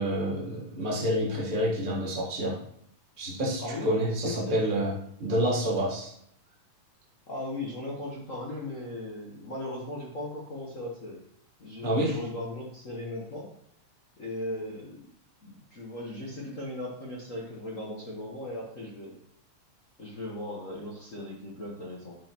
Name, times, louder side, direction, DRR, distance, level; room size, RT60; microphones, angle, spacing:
voice 1, 0.0-2.6 3.2-6.1 11.8-12.2, equal, 45° right, -4 dB, 0.6 m, -28 dB
voice 2, 3.6-3.9 4.2-4.7 7.3-11.2 11.6-13.5 14.2-15.0 15.4-19.2 20.0-22.2, left 1 dB, 55° left, -4 dB, 0.9 m, -37 dB
11.0 x 5.3 x 3.0 m, 0.68 s
omnidirectional pair, 3.4 m